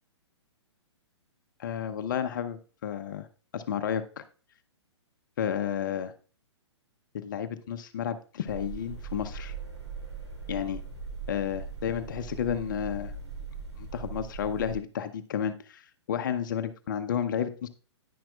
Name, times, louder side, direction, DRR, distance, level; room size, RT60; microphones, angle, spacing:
voice 1, 1.6-3.3 3.5-4.2 5.4-6.1 7.1-9.5 10.5-10.8 11.3-13.1 13.8-17.7, left 9 dB, 45° left, 11 dB, 0.7 m, -32 dB
sound 1, 8.5-14.8, right 5 dB, 70° right, 3.6 m, -40 dB
10.0 x 10.0 x 2.4 m, 0.38 s
figure-of-eight pair, 115°, 15 cm